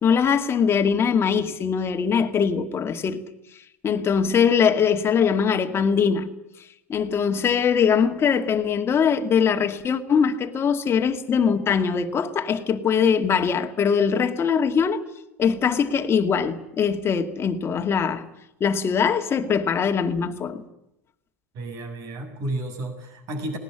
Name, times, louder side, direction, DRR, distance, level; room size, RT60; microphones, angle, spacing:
voice 1, 0.0-3.2 3.8-6.3 6.9-15.0 15.4-18.2 18.6-20.6, left 6 dB, 30° left, 2.2 m, -22 dB
voice 2, 21.5-23.6, right 1 dB, 50° right, 6.6 m, -32 dB
19.0 x 19.0 x 9.9 m
hypercardioid pair, 80°, 8 cm